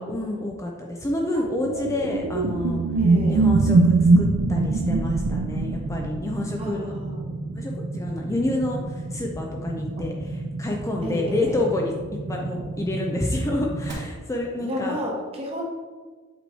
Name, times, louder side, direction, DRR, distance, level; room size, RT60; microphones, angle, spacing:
voice 1, 0.0-2.8 3.3-6.9 7.6-11.9 12.3-15.0, left 1 dB, 15° left, 0 dB, 0.5 m, -28 dB
sound 1, 1.4-6.4, right 3 dB, 80° right, 0.4 m, -21 dB
voice 2, 3.0-3.4 6.6-7.2 11.0-11.6 14.6-15.6, equal, 30° right, -1 dB, 1.1 m, -31 dB
sound 2, 3.9-13.9, right 2 dB, 60° right, 1.5 m, -33 dB
8.1 x 3.1 x 4.1 m, 1.4 s
head